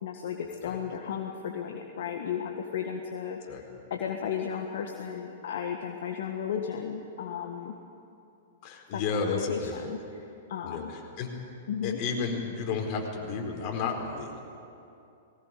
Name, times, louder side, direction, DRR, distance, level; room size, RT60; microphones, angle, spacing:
voice 1, 0.0-3.4 3.9-7.7 8.9-10.9 11.7-12.0, left 7 dB, 65° left, 2 dB, 1.7 m, -34 dB
voice 2, 8.6-9.7 10.6-11.3 11.8-14.4, left 5 dB, 45° left, 2 dB, 4.3 m, -32 dB
20.0 x 18.0 x 9.4 m, 2.7 s
hypercardioid pair, 110°, 0 cm